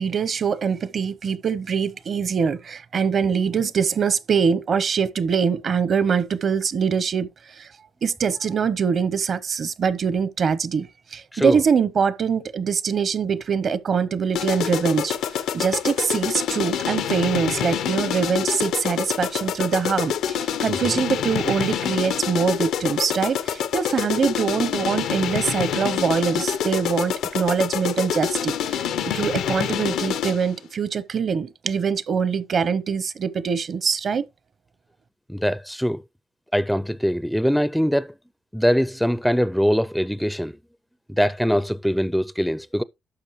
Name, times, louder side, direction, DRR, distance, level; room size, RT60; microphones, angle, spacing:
voice 1, 0.0-7.7 8.0-28.9 29.1-34.2, right 6 dB, 50° right, 0.7 m, -23 dB
sound 1, 14.3-30.5, left 9 dB, 85° left, 0.7 m, -26 dB
voice 2, 35.3-36.0 36.5-38.1 38.5-40.6 41.1-42.8, equal, ahead, 0.4 m, -22 dB
12.0 x 6.7 x 3.1 m
cardioid pair, 90°, 0 cm